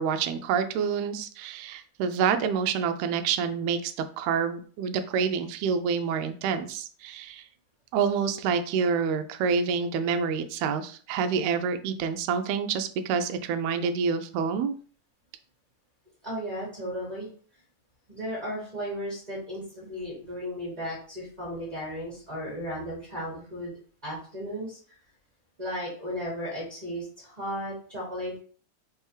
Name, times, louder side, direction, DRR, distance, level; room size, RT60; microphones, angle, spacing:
voice 1, 0.0-7.4 7.9-14.7, right 6 dB, 80° right, 8 dB, 1.8 m, -27 dB
voice 2, 16.2-17.3 18.1-23.7 24.0-24.8 25.6-28.4, equal, 20° right, -6 dB, 1.3 m, -35 dB
4.6 x 3.3 x 3.1 m, 0.43 s
omnidirectional pair, 3.4 m